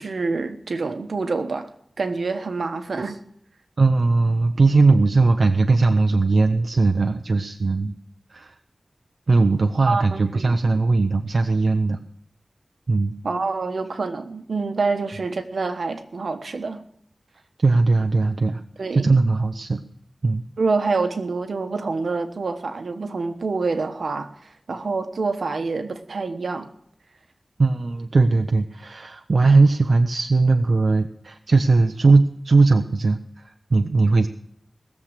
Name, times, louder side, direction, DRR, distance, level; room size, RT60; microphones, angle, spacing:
voice 1, 0.0-1.7 2.0-3.2 9.9-10.6 13.2-16.9 18.8-19.1 20.6-26.7, right 4 dB, 90° right, 1.2 m, -26 dB
voice 2, 3.8-7.9 8.3-8.5 9.3-12.0 12.9-13.1 17.6-18.6 18.9-19.8 20.2-20.4 27.6-34.3, right 3 dB, 70° right, 0.7 m, -19 dB
19.0 x 7.5 x 6.6 m
wide cardioid pair, 80°, 0 cm